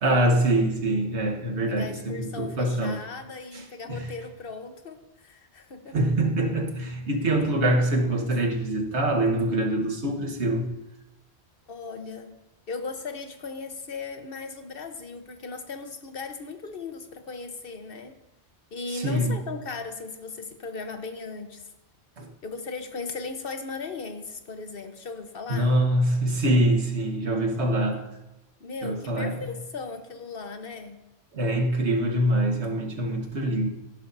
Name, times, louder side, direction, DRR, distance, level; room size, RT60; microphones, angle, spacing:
voice 1, 0.0-3.0 3.5-3.6 3.9-4.1 5.9-10.7 18.9-19.4 22.2-22.3 25.5-28.0 28.8-29.5 31.3-33.7, right 1 dB, 80° right, 2 dB, 1.6 m, -24 dB
voice 2, 1.7-6.0 11.7-12.3 12.7-18.1 18.7-21.6 22.4-25.7 28.6-31.0, left 4 dB, 55° left, 7 dB, 1.2 m, -37 dB
16.5 x 11.0 x 2.7 m, 1.0 s
omnidirectional pair, 1.1 m